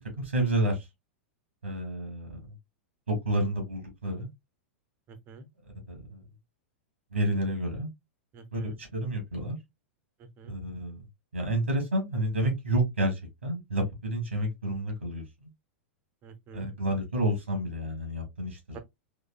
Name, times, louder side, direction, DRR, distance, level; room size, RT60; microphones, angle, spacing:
voice 1, 0.2-0.8 1.6-2.4 3.1-4.3 5.9-6.2 7.1-7.9 8.5-9.6 10.5-11.0 11.3-15.2 16.5-18.8, right 1 dB, 75° right, 1.7 m, -30 dB
voice 2, 5.1-5.5 8.3-8.8 10.2-10.5 16.2-16.7 18.7-18.8, right 4 dB, 30° right, 0.8 m, -47 dB
3.9 x 3.2 x 2.4 m
figure-of-eight pair, 95°, 7 cm